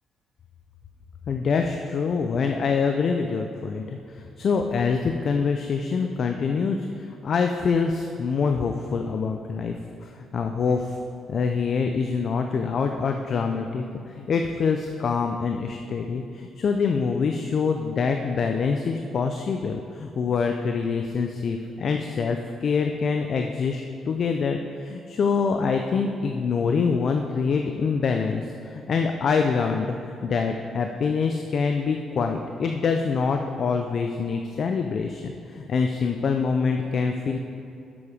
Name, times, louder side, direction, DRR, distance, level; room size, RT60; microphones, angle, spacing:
voice 1, 1.3-11.0 11.3-37.4, left 5 dB, 55° left, 4 dB, 0.5 m, -25 dB
6.9 x 6.9 x 5.0 m, 2.6 s
cardioid pair, 90°, 0 cm